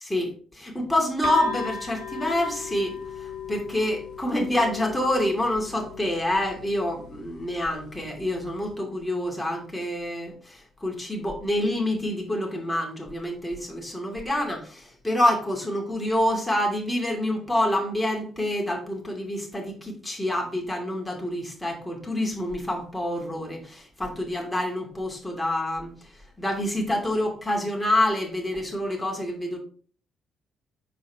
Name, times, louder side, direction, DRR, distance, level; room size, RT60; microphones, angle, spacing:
voice 1, 0.0-29.6, left 1 dB, 10° left, -1 dB, 2.5 m, -27 dB
sound 1, 1.2-8.7, left 7 dB, 70° left, 1.2 m, -39 dB
6.1 x 4.5 x 3.5 m, 0.43 s
hypercardioid pair, 50°, 0 cm